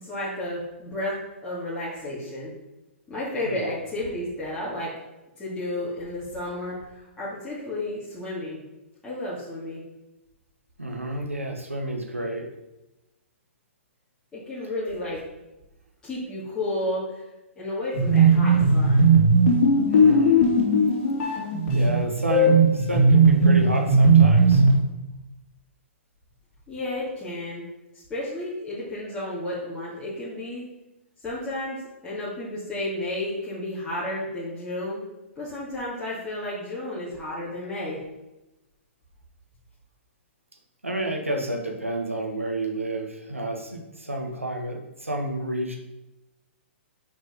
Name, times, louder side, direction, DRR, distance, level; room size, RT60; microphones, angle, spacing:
voice 1, 0.0-1.2 1.4-2.5 3.1-4.9 5.4-6.8 7.2-8.6 9.0-9.8 14.3-15.2 16.0-17.2 17.6-19.0 26.7-27.7 28.1-30.6 31.2-31.8 32.0-35.0 35.4-38.0, left 1 dB, 10° left, -10 dB, 2.4 m, -32 dB
voice 2, 10.8-12.4 19.9-20.4 21.7-24.6 40.8-45.8, right 1 dB, 85° right, 2 dB, 1.6 m, -30 dB
sound 1, 17.9-24.8, right 2 dB, 40° left, 2.9 m, -18 dB
7.1 x 5.3 x 5.4 m, 0.99 s
figure-of-eight pair, 120°, 7 cm